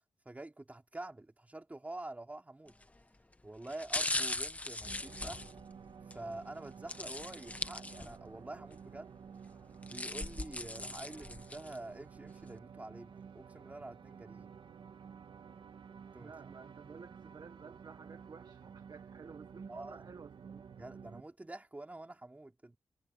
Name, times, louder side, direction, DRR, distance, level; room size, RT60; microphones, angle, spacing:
voice 1, 0.2-2.7 3.4-5.5 6.1-9.1 9.8-14.5 16.1-16.3 19.7-20.0 20.8-22.8, right 2 dB, 20° right, 3.3 m, -47 dB
sound 1, 2.7-3.0 3.6-6.2 6.9-8.3 8.7-8.8 9.6-11.8 12.3-12.4, left 2 dB, 15° left, 1.3 m, -39 dB
sound 2, 4.9-21.2, right 7 dB, 85° right, 1.9 m, -52 dB
voice 2, 16.2-20.7, right 5 dB, 55° right, 1.6 m, -52 dB
wide cardioid pair, 110°, 8 cm